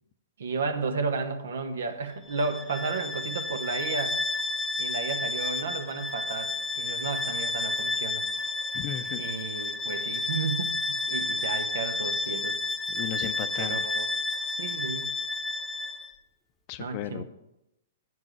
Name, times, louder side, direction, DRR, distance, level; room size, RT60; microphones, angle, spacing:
voice 1, 0.4-4.2 4.8-8.2 9.2-12.5 13.6-14.1 14.6-15.1 16.8-17.2, right 4 dB, 70° right, 9 dB, 0.8 m, -33 dB
Bowed string instrument, 2.3-16.1, left 3 dB, 5° left, 0.9 m, -31 dB
voice 2, 8.7-9.2 12.9-13.8 16.7-17.2, left 11 dB, 45° left, 12 dB, 0.5 m, -35 dB
9.2 x 7.5 x 3.1 m, 0.86 s
hypercardioid pair, 115°, 0 cm